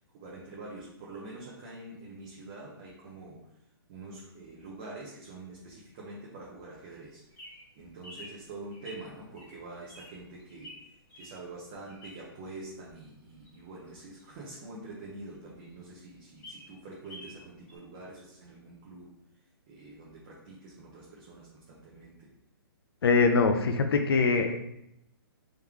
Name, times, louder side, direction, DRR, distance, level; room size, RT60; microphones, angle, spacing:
voice 1, 0.0-3.6 3.9-7.5 7.8-10.7 11.1-19.1 19.7-22.3, right 2 dB, 20° right, -5 dB, 0.6 m, -46 dB
Bird vocalization bird call bird song, 7.0-12.4 12.9-15.0 15.4-15.5 15.7-15.8 16.2-17.4 17.7-17.8, left 1 dB, 10° left, 0.8 m, -50 dB
voice 2, 23.0-24.6, left 4 dB, 75° left, 6 dB, 0.5 m, -23 dB
3.6 x 3.1 x 3.5 m, 0.82 s
hypercardioid pair, 170°, 13 cm